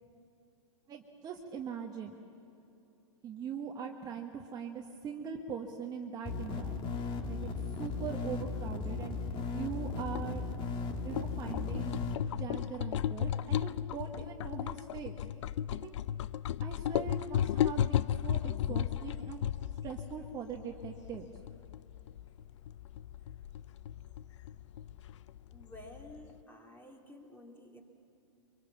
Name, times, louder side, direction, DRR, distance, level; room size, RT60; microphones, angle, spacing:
voice 1, 0.9-2.1 3.2-7.0 7.3-7.5 7.8-9.2 9.5-10.5 11.0-12.0 12.3-15.2 15.7-16.0 16.6-19.5 19.8-21.3, right 7 dB, 25° right, 2 dB, 1.4 m, -41 dB
sound 1, 6.3-12.2, left 3 dB, 30° left, 1.6 m, -36 dB
sound 2, 6.9-26.4, left 10 dB, 60° left, 0.5 m, -35 dB
voice 2, 25.5-27.8, left 1 dB, 10° left, 2 dB, 3.0 m, -52 dB
24.0 x 23.5 x 7.3 m, 2.7 s
hypercardioid pair, 125°, 17 cm